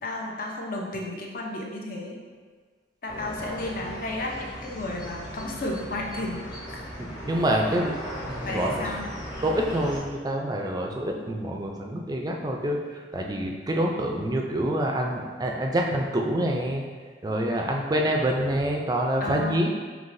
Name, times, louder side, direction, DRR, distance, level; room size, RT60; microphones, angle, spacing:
voice 1, 0.0-2.2 3.0-6.8 8.4-9.1 19.2-19.7, left 2 dB, 50° left, -1 dB, 0.6 m, -33 dB
sound 1, 3.1-10.0, equal, 25° left, 0.9 m, -37 dB
voice 2, 7.0-8.0 8.2-8.8 9.4-16.8 17.2-19.7, right 1 dB, 20° right, 1 dB, 0.4 m, -26 dB
5.6 x 2.9 x 2.6 m, 1.5 s
head